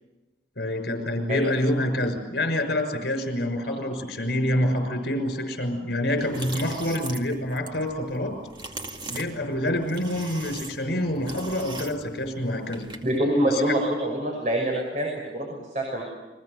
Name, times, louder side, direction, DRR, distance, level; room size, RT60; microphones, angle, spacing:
voice 1, 0.6-8.4 9.1-12.9 13.5-13.7, left 1 dB, 65° left, 7 dB, 5.9 m, -27 dB
sound 1, 6.2-13.2, right 2 dB, 25° right, 2.3 m, -40 dB
voice 2, 13.0-16.0, right 1 dB, 45° right, 0 dB, 6.1 m, -25 dB
30.0 x 23.0 x 6.8 m, 1.1 s
head